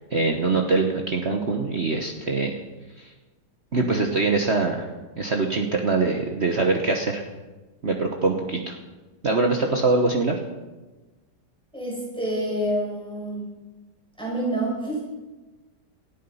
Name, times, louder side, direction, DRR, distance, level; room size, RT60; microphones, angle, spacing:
voice 1, 0.1-2.6 3.0-3.1 3.7-4.9 5.2-7.2 7.8-8.8 9.2-10.4, right 3 dB, 40° right, 2 dB, 1.3 m, -23 dB
voice 2, 11.7-13.5 14.2-15.1, right 1 dB, 5° left, -4 dB, 5.8 m, -28 dB
19.0 x 13.0 x 5.6 m, 1.2 s
omnidirectional pair, 1.9 m